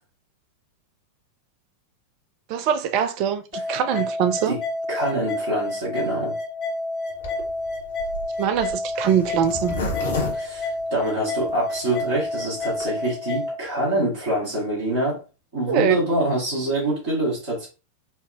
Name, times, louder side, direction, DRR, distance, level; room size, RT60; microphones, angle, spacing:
voice 1, 2.5-4.6 8.4-9.8 15.7-16.0, right 8 dB, 45° right, 0.3 m, -23 dB
sound 1, 3.5-13.5, left 2 dB, 35° left, 0.8 m, -29 dB
voice 2, 4.9-6.3 10.3-15.2 15.5-17.7, right 1 dB, 60° right, 1.7 m, -25 dB
Zipper (clothing), 7.2-11.5 12.0-12.1 12.3-12.4 12.6-12.9, left 2 dB, 65° left, 0.9 m, -30 dB
4.2 x 2.0 x 2.4 m
figure-of-eight pair, 90°, 0 cm